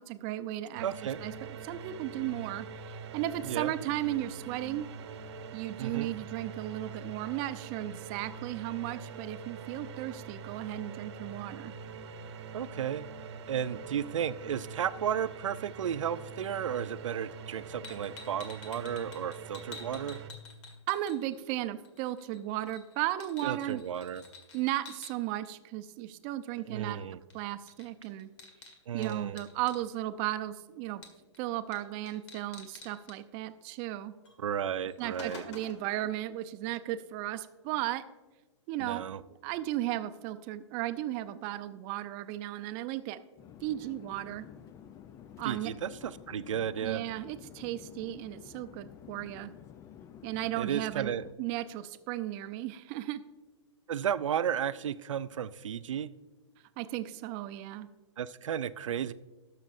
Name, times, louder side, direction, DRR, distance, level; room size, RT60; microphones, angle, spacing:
voice 1, 0.0-0.9 1.2-1.3 1.6-4.9 5.5-11.7 20.9-23.8 24.5-27.1 27.3-28.3 28.9-31.0 31.4-34.1 35.0-38.0 38.7-39.0 39.4-43.2 43.6-44.5 45.4-45.7 46.8-49.5 50.2-51.1 51.4-53.2 56.8-57.9, right 14 dB, 35° right, 12 dB, 0.6 m, -35 dB
sound 1, 0.8-20.3, right 5 dB, 60° right, 0.9 m, -44 dB
voice 2, 0.8-1.2 3.4-3.7 5.8-6.1 12.5-13.0 13.5-20.2 23.4-24.2 26.7-27.2 28.9-29.4 34.4-35.4 38.8-39.2 45.4-47.0 50.6-51.3 53.9-56.1 58.2-59.1, right 9 dB, 80° right, 16 dB, 0.4 m, -33 dB
sound 2, 17.8-21.6 21.8-25.1 27.3-27.4 27.7-29.8 31.0-31.4 31.7-33.2 34.2-34.4 34.7-35.9, left 4 dB, 70° left, 1.9 m, -49 dB
Conversation / Chatter / Fixed-wing aircraft airplane, 43.4-51.3, left 9 dB, 20° left, 0.4 m, -51 dB
19.0 x 6.6 x 2.6 m, 1.2 s
hypercardioid pair, 125°, 16 cm